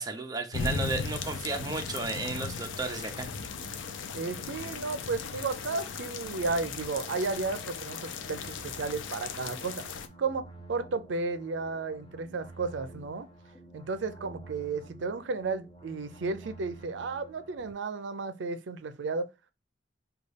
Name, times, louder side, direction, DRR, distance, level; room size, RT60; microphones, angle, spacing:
voice 1, 0.0-3.3, right 3 dB, 20° right, 0.5 m, -33 dB
sound 1, 0.5-10.1, left 5 dB, 90° left, 0.5 m, -37 dB
sound 2, 0.6-17.7, right 2 dB, 30° left, 0.9 m, -51 dB
voice 2, 4.1-9.8 10.2-13.3 13.7-19.3, right 4 dB, 75° right, 0.5 m, -33 dB
5.2 x 2.3 x 3.3 m
head